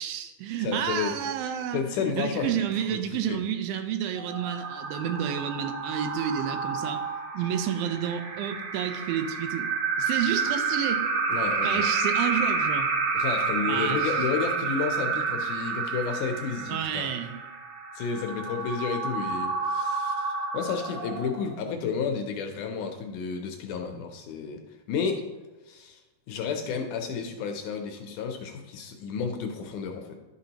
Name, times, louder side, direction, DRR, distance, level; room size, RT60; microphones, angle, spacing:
voice 1, 0.0-1.8 2.2-7.0 7.3-11.1 11.6-12.9 13.7-14.1 16.7-17.4, right 9 dB, 90° right, 8 dB, 2.5 m, -30 dB
voice 2, 0.6-1.1 1.7-3.0 3.3-3.4 11.3-11.9 13.1-17.1 18.0-25.3 25.7-26.0 26.3-30.2, left 6 dB, 75° left, 4 dB, 2.0 m, -31 dB
sound 1, 4.2-21.5, right 4 dB, 65° right, 1.5 m, -30 dB
11.5 x 6.1 x 2.9 m, 1.1 s
omnidirectional pair, 4.0 m